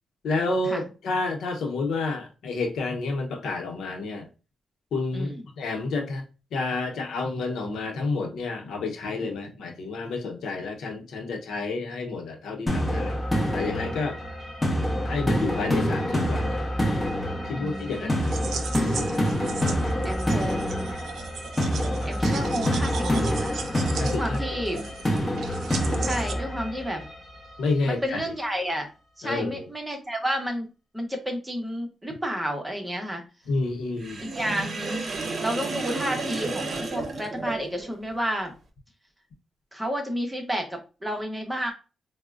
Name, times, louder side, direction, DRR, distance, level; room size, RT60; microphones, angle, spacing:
voice 1, 0.2-4.3 4.9-6.2 6.5-13.2 13.5-14.2 15.0-16.6 17.4-18.3 24.0-24.4 24.7-24.9 27.6-28.2 29.2-29.7 33.5-34.2, left 3 dB, 85° left, 0.7 m, -29 dB
voice 2, 5.1-5.4 17.6-18.2 20.0-20.9 22.1-23.5 24.0-24.8 26.0-27.1 27.8-28.9 29.2-33.2 34.2-35.0 35.4-38.5 39.7-41.7, equal, 10° right, 0.9 m, -31 dB
sound 1, 12.7-27.6, equal, 20° left, 0.9 m, -27 dB
sound 2, 17.8-26.3, right 6 dB, 80° right, 0.5 m, -37 dB
Sink (filling or washing), 34.0-37.9, right 3 dB, 45° right, 0.8 m, -32 dB
4.4 x 2.1 x 2.4 m
cardioid pair, 100°, 0 cm